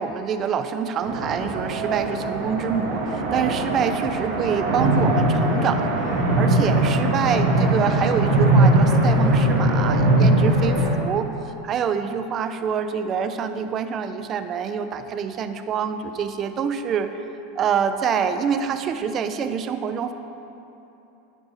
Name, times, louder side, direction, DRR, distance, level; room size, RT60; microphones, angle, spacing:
voice 1, 0.0-5.9 6.4-11.3 11.6-17.2 17.6-20.1, right 7 dB, 40° right, 9 dB, 0.6 m, -26 dB
sound 1, 1.0-10.9, right 1 dB, 75° right, 1.8 m, -20 dB
11.0 x 5.4 x 5.6 m, 3.0 s
hypercardioid pair, 100°, 0 cm